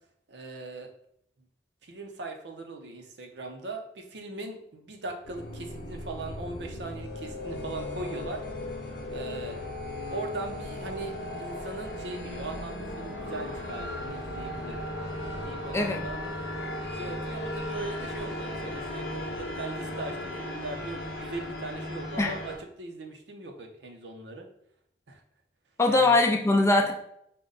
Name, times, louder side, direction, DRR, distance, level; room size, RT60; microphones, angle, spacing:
voice 1, 0.3-0.9 1.8-8.4 9.1-9.6 10.1-11.1 11.4-14.8 15.4-16.2 16.9-24.5 25.1-25.2 25.9-26.2, right 2 dB, 85° right, 4 dB, 0.7 m, -39 dB
sound 1, 5.2-22.6, left 1 dB, 75° left, 0.8 m, -36 dB
voice 2, 15.7-16.1 22.2-22.4 25.8-26.9, left 2 dB, 15° left, 2 dB, 0.4 m, -22 dB
5.0 x 2.2 x 3.9 m, 0.72 s
head